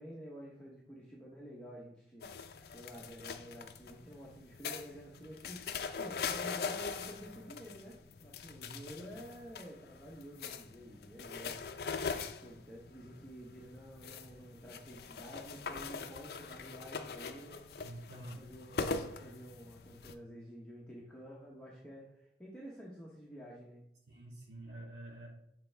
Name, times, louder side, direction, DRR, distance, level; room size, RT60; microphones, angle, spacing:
voice 1, 0.0-2.3 2.7-11.7 12.1-17.6 18.1-23.8, equal, 5° left, -5 dB, 0.9 m, -50 dB
sound 1, 2.2-20.1, left 5 dB, 55° left, 0.4 m, -42 dB
voice 2, 8.6-9.1 17.8-18.4 24.1-25.3, right 1 dB, 65° right, -3 dB, 2.1 m, -48 dB
6.9 x 4.3 x 3.3 m, 0.79 s
head